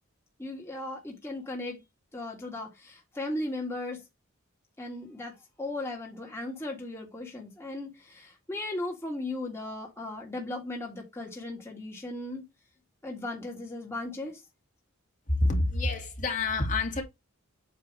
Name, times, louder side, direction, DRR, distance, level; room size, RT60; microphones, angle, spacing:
voice 1, 0.4-1.8 2.1-4.0 4.8-12.4 13.0-14.4, left 2 dB, 10° left, 1.6 m, -37 dB
voice 2, 15.3-17.0, left 2 dB, 35° left, 2.0 m, -27 dB
8.4 x 2.9 x 6.0 m
head